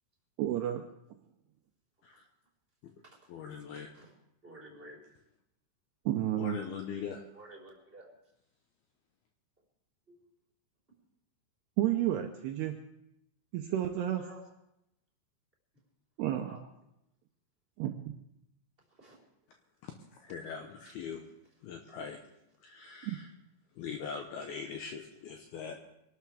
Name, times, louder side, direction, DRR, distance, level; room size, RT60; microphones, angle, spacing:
voice 1, 0.4-0.8 6.1-6.6 11.8-12.8 13.5-14.2 16.2-16.6 17.8-17.9 23.0-23.2, right 12 dB, 80° right, 4 dB, 2.5 m, -31 dB
voice 2, 3.3-3.9 6.4-7.2 20.2-21.2 21.6-22.2 22.6-23.3 23.8-25.8, left 6 dB, 75° left, 3 dB, 2.5 m, -41 dB
voice 3, 4.4-5.0 7.3-8.1 14.0-14.4 16.4-16.6 19.0-19.2, right 1 dB, 10° right, -3 dB, 3.8 m, -51 dB
25.0 x 12.5 x 3.5 m, 0.82 s
omnidirectional pair, 5.4 m